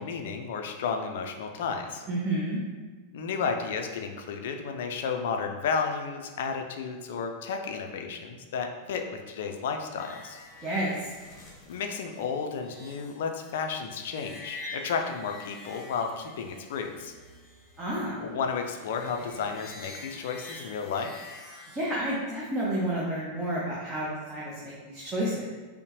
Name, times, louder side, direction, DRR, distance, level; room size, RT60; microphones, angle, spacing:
voice 1, 0.0-2.0 3.1-10.4 11.7-17.1 18.2-21.2, left 5 dB, 55° left, 4 dB, 0.4 m, -32 dB
voice 2, 2.1-2.6 10.6-10.9 17.8-18.1 21.7-25.5, right 1 dB, 20° right, -6 dB, 0.8 m, -30 dB
sound 1, 10.0-21.8, left 2 dB, 20° left, 1.0 m, -47 dB
5.3 x 2.1 x 2.9 m, 1.3 s
figure-of-eight pair, 90°, 0 cm